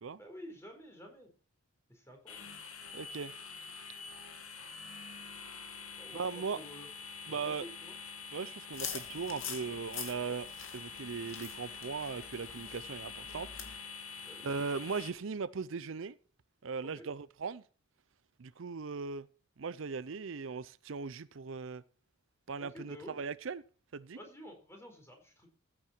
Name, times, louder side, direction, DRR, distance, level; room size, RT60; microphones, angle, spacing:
voice 1, 0.2-1.3 1.9-2.5 6.0-6.9 7.3-8.0 14.2-14.5 16.8-17.1 22.6-23.2 24.1-25.5, equal, 10° left, 4.2 m, -51 dB
sound 1, 2.3-15.1, left 5 dB, 85° left, 2.3 m, -46 dB
voice 2, 2.9-3.3 6.1-6.6 7.3-7.7 8.3-13.8 14.4-16.2 16.6-17.6 18.4-19.3 19.6-21.8 22.5-23.6 23.9-24.2, right 5 dB, 70° right, 0.5 m, -39 dB
sound 2, 8.7-13.8, left 7 dB, 70° left, 2.5 m, -45 dB
15.0 x 8.7 x 4.4 m
head